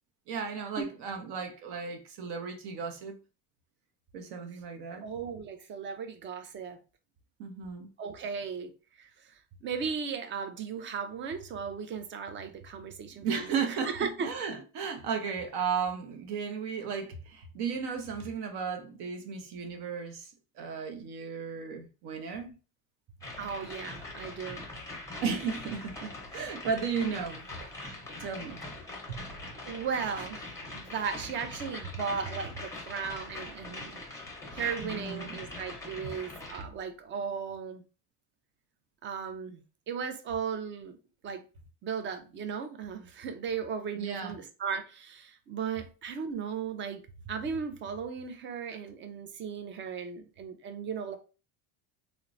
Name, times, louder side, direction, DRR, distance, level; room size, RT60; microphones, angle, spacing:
voice 1, 0.3-3.2 4.1-5.1 7.4-7.9 13.2-20.3 20.6-22.6 25.2-27.7 28.1-28.6 29.1-29.3 34.8-35.4 44.0-44.4, right 6 dB, 60° right, 0.8 m, -35 dB
voice 2, 5.0-6.8 8.0-8.7 9.0-14.3 23.4-24.7 29.6-30.5 30.7-34.1 34.5-37.8 39.0-41.0 41.2-41.4 41.8-51.2, right 6 dB, 30° right, 0.4 m, -36 dB
sound 1, 23.2-36.6, left 2 dB, 5° left, 0.7 m, -42 dB
2.9 x 2.1 x 2.5 m
supercardioid pair, 115°, 45 cm